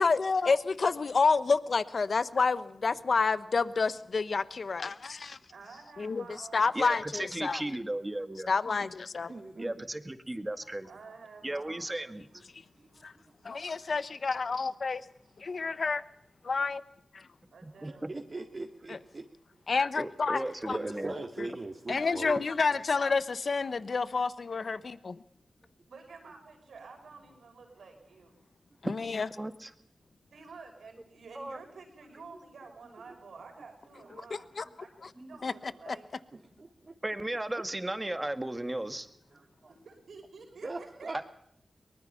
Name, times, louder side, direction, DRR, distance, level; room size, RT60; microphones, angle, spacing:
voice 1, 0.0-5.4 6.0-6.2 6.5-7.6 8.5-9.3 13.0-13.1 13.4-15.0 15.4-16.0 16.4-16.8 17.1-17.3 18.9-19.0 19.7-20.8 21.4-21.5 21.9-25.2 28.8-29.3 34.3-34.6 35.4-35.5 35.9-36.0, left 4 dB, 65° left, 14 dB, 1.0 m, -29 dB
voice 2, 5.5-7.0 10.9-12.2 15.2-15.3 17.5-18.1 25.8-28.4 30.3-34.5 34.8-36.1 39.7-41.1, right 4 dB, 90° right, 3 dB, 5.8 m, -50 dB
voice 3, 6.7-8.5 9.6-10.9 11.4-12.2 17.6-18.1 20.0-21.1 28.8-28.9 29.4-29.7 31.4-31.6 35.2-35.4 37.0-39.1 41.1-41.2, right 1 dB, 25° right, 8 dB, 2.0 m, -35 dB
voice 4, 9.3-9.8 12.7-13.2 13.6-13.9 17.8-19.3 20.4-22.4 36.3-36.9 39.3-39.8 40.6-41.2, right 3 dB, 50° right, 2 dB, 2.1 m, -41 dB
23.0 x 20.0 x 5.6 m, 0.73 s
cardioid pair, 45°, 0 cm